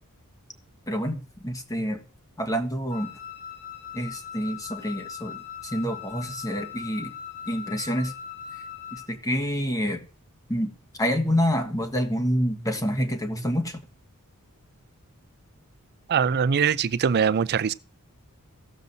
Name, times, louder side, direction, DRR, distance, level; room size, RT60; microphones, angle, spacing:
voice 1, 0.9-2.0 2.4-3.1 3.9-5.4 5.7-7.1 7.5-8.1 8.9-10.0 10.5-10.7 11.0-13.8, equal, 15° left, 1.2 m, -27 dB
Wind instrument woodwind instrument, 2.9-9.1, left 8 dB, 85° left, 3.8 m, -40 dB
voice 2, 16.1-17.7, right 6 dB, 50° right, 0.4 m, -22 dB
16.5 x 7.2 x 2.7 m
head